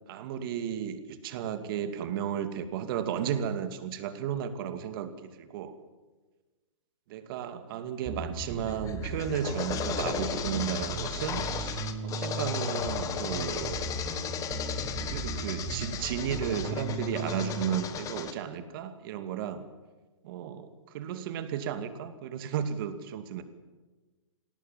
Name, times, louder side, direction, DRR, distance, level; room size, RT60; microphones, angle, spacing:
voice 1, 0.1-5.8 7.1-13.8 15.1-19.7 20.2-23.4, right 9 dB, 45° right, 9 dB, 2.5 m, -34 dB
Bass guitar, 8.1-17.6, right 3 dB, 15° right, 6.8 m, -37 dB
sound 1, 8.7-18.3, left 8 dB, 20° left, 1.6 m, -36 dB
27.0 x 18.0 x 7.6 m, 1.3 s
hypercardioid pair, 140°, 16 cm